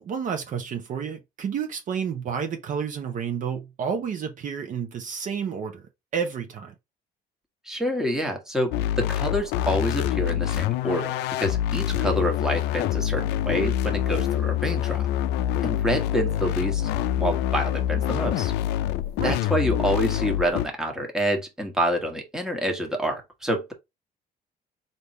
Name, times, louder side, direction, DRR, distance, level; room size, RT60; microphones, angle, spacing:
voice 1, 0.0-6.7 19.2-19.4, right 7 dB, 50° right, 0.9 m, -30 dB
voice 2, 7.6-15.1 15.6-16.9 17.2-18.5 19.2-23.7, equal, 5° right, 1.2 m, -27 dB
sound 1, 8.7-20.7, left 12 dB, 90° left, 0.4 m, -26 dB
3.5 x 2.8 x 4.2 m
cardioid pair, 110°, 17 cm